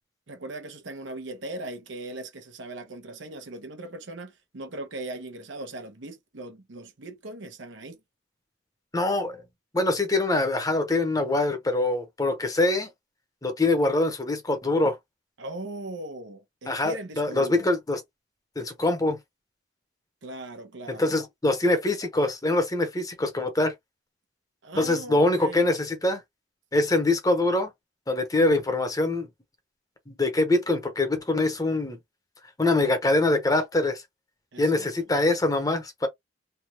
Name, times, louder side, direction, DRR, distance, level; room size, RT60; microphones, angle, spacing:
voice 1, 0.3-8.0 15.4-17.7 20.2-21.2 24.6-25.7 34.5-34.9, right 2 dB, 85° right, 0.9 m, -39 dB
voice 2, 8.9-9.4 9.7-12.9 13.4-15.0 16.7-18.0 18.6-19.2 20.9-23.7 24.8-26.2 26.7-27.7 28.1-29.3 30.1-32.0 32.6-34.0 34.6-36.1, left 2 dB, 20° left, 0.9 m, -24 dB
3.4 x 2.3 x 2.8 m
head